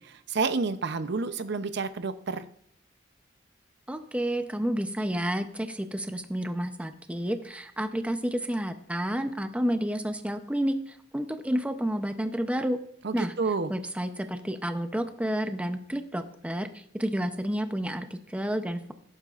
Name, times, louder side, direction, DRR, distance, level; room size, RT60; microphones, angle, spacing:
voice 1, 0.3-2.4 13.0-13.7, right 4 dB, 60° right, 11 dB, 0.7 m, -29 dB
voice 2, 3.9-12.8 13.1-13.3 13.7-18.9, equal, 5° right, 8 dB, 0.6 m, -30 dB
17.0 x 9.0 x 2.5 m, 0.66 s
head